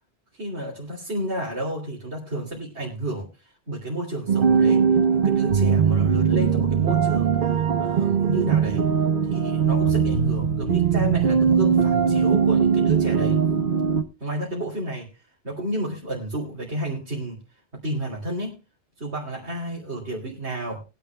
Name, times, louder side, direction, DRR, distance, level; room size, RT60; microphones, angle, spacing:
voice 1, 0.3-8.9 9.3-13.4 14.2-15.1 15.4-17.4 17.7-18.6 19.0-20.8, right 1 dB, 80° right, -4 dB, 3.2 m, -31 dB
sound 1, 4.3-14.0, right 6 dB, 55° right, 1.1 m, -20 dB
21.5 x 10.5 x 2.3 m, 0.28 s
omnidirectional pair, 1.1 m